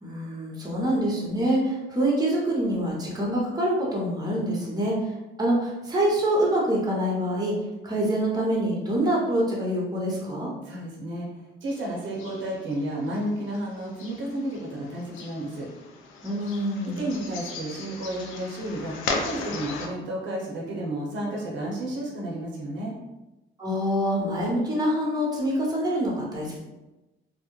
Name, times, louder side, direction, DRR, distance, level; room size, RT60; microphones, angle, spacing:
voice 1, 0.0-5.1 5.4-7.5 7.8-10.5 16.2-17.0 23.6-26.6, right 1 dB, 20° right, -4 dB, 0.8 m, -25 dB
voice 2, 10.6-15.7 17.0-19.0 19.2-23.0, right 1 dB, 70° right, -2 dB, 0.7 m, -32 dB
sound 1, 11.7-19.9, left 3 dB, 85° left, 0.4 m, -37 dB
2.3 x 2.1 x 3.0 m, 1.0 s
cardioid pair, 90°, 20 cm